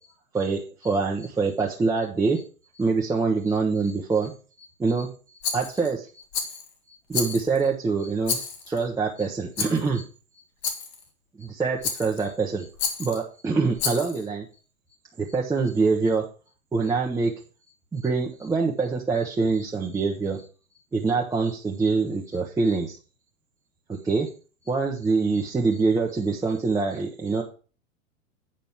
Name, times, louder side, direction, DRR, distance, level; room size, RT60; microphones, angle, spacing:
voice 1, 0.3-2.4 2.7-4.3 4.6-5.1 5.5-6.2 6.5-6.6 7.1-10.0 11.4-12.7 13.0-14.5 15.2-16.2 16.7-17.3 17.9-20.4 20.9-23.0 23.9-24.3 24.7-27.4, right 4 dB, 10° right, -3 dB, 0.9 m, -25 dB
Rattle, 5.4-5.9 6.3-6.7 7.1-7.6 8.2-8.8 9.6-9.9 10.6-11.0 11.8-12.3 12.8-13.2 13.8-14.2, left 6 dB, 45° left, 2.0 m, -30 dB
8.9 x 5.2 x 5.8 m, 0.37 s
figure-of-eight pair, 105°, 41 cm